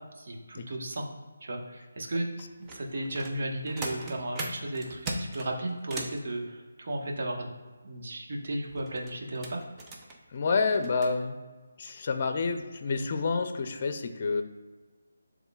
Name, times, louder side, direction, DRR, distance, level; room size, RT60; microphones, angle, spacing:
voice 1, 0.2-1.1 1.4-2.3 2.7-7.6 7.8-9.6, right 1 dB, 55° right, 0 dB, 1.3 m, -34 dB
sound 1, 2.4-6.2 8.7-11.1 11.9-12.0 12.4-12.6 13.0-13.3 13.6-13.7, right 2 dB, 15° right, 0.7 m, -39 dB
voice 2, 10.3-11.4 11.8-14.4, left 4 dB, 40° left, 8 dB, 0.6 m, -28 dB
11.0 x 3.6 x 2.4 m, 1.4 s
figure-of-eight pair, 160°, 0 cm